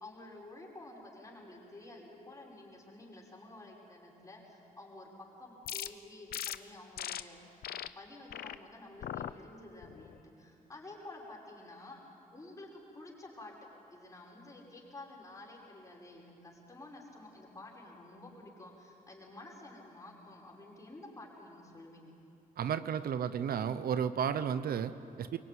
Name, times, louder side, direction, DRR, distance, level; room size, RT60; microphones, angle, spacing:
voice 1, 0.0-5.1 5.4-7.4 7.9-12.0 12.3-13.6 13.9-22.1, left 2 dB, 20° left, -3 dB, 6.0 m, -51 dB
sound 1, 5.6-5.9 6.3-6.6 7.0-7.2 7.6-7.9 8.3-8.6 9.0-9.3 9.8-10.2, left 11 dB, 90° left, 0.8 m, -39 dB
voice 2, 22.6-25.4, right 8 dB, 80° right, 12 dB, 0.9 m, -33 dB
24.5 x 22.5 x 9.6 m, 2.8 s
cardioid pair, 120°, 15 cm